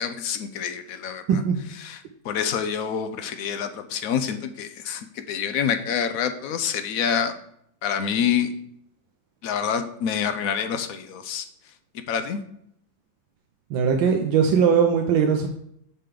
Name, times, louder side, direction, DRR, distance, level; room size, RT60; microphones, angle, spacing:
voice 1, 0.0-1.4 1.8-7.3 7.8-8.5 9.4-11.5 11.9-12.4, left 7 dB, 75° left, 9 dB, 0.8 m, -27 dB
voice 2, 1.3-1.7 13.7-15.5, right 6 dB, 90° right, 4 dB, 1.5 m, -20 dB
8.9 x 3.8 x 5.0 m, 0.73 s
omnidirectional pair, 2.1 m